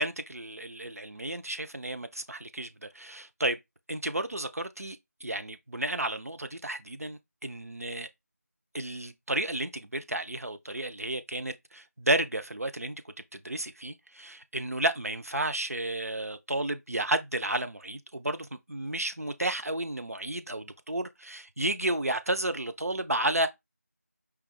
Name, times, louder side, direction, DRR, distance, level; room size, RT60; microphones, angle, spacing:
voice 1, 0.0-3.6 3.9-5.0 5.2-8.1 8.7-13.0 13.3-23.5, right 1 dB, 65° right, 0.8 m, -32 dB
5.0 x 2.9 x 3.4 m
figure-of-eight pair, 170°, 9 cm